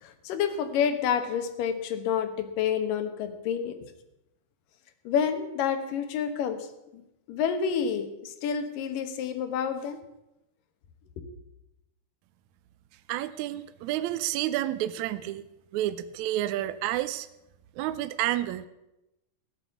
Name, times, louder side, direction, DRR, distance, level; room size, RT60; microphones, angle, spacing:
voice 1, 0.0-3.8 5.0-6.7 6.9-7.0 7.3-10.0 11.2-11.3, left 7 dB, 85° left, 9 dB, 2.9 m, -29 dB
voice 2, 13.1-15.5 15.7-17.3 17.8-18.7, right 13 dB, 80° right, 12 dB, 1.8 m, -30 dB
16.5 x 7.6 x 8.3 m, 0.91 s
omnidirectional pair, 3.8 m